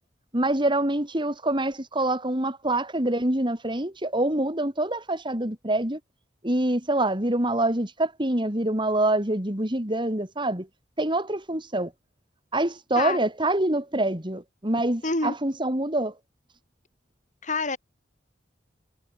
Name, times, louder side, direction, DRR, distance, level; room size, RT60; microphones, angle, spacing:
voice 1, 0.3-6.0 6.4-10.7 11.0-11.9 12.5-16.1, right 1 dB, 25° right, 4.1 m, -25 dB
voice 2, 15.0-15.4 17.4-17.8, left 3 dB, 45° left, 5.5 m, -26 dB
head